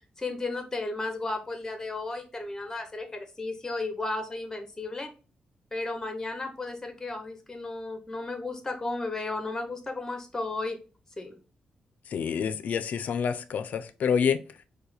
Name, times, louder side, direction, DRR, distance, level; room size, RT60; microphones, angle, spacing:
voice 1, 0.2-5.1 5.7-10.8 11.2-11.4, left 2 dB, 20° left, 0.7 m, -34 dB
voice 2, 12.1-14.4, left 7 dB, 70° left, 0.4 m, -27 dB
4.6 x 2.2 x 3.3 m
wide cardioid pair, 120°, 3 cm